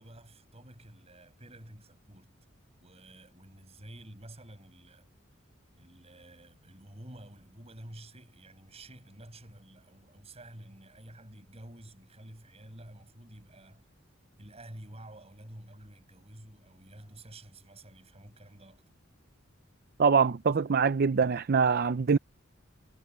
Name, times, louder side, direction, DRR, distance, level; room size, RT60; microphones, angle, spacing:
voice 1, 0.0-2.3 2.8-5.1 5.7-13.9 14.4-18.8, right 1 dB, 30° right, 7.1 m, -50 dB
voice 2, 20.0-22.2, right 5 dB, 50° right, 0.5 m, -24 dB
head